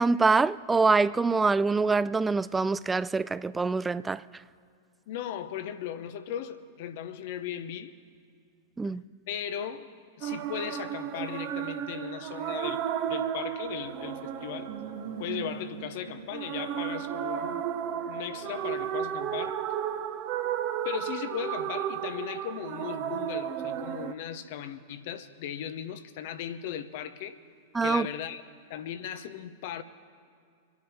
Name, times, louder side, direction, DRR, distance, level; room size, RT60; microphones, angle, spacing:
voice 1, 0.0-4.2 8.8-9.0 27.7-28.1, right 4 dB, 10° right, 0.4 m, -25 dB
voice 2, 5.1-7.9 9.3-9.9 10.2-12.8 13.1-14.7 15.2-17.7 18.0-19.6 20.8-27.4 27.8-28.4 28.7-29.8, left 9 dB, 55° left, 1.0 m, -37 dB
sound 1, 10.2-24.1, right 9 dB, 40° right, 1.0 m, -33 dB
Brass instrument, 13.6-19.1, equal, 85° left, 4.2 m, -48 dB
26.0 x 9.6 x 4.6 m
figure-of-eight pair, 95°, 0 cm